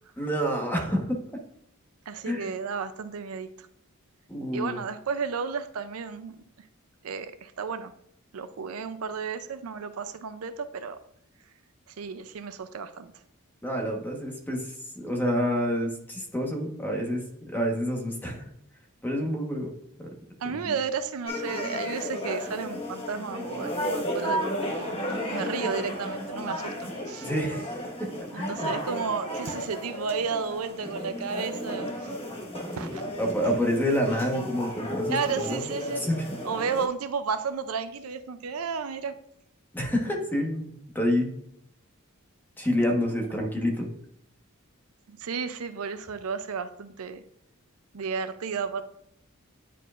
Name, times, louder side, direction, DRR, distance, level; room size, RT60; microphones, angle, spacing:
voice 1, 0.2-1.2 2.3-2.5 4.3-4.8 13.6-14.7 14.9-18.5 19.0-19.7 20.0-20.1 20.4-20.7 27.2-27.6 28.0-28.1 28.3-28.7 33.2-35.2 35.5-35.6 36.0-36.3 39.7-41.3 42.6-43.9, equal, 10° left, 1 dB, 1.2 m, -28 dB
voice 2, 2.1-3.7 4.5-6.4 7.0-7.9 8.3-11.0 11.9-13.1 20.4-27.3 28.3-32.2 32.7-33.0 33.5-33.6 35.1-36.1 36.4-39.2 45.1-47.2 47.9-48.8, right 5 dB, 85° right, 10 dB, 0.5 m, -33 dB
sound 1, 21.3-36.9, equal, 25° left, 1.3 m, -33 dB
9.9 x 4.5 x 2.5 m, 0.72 s
head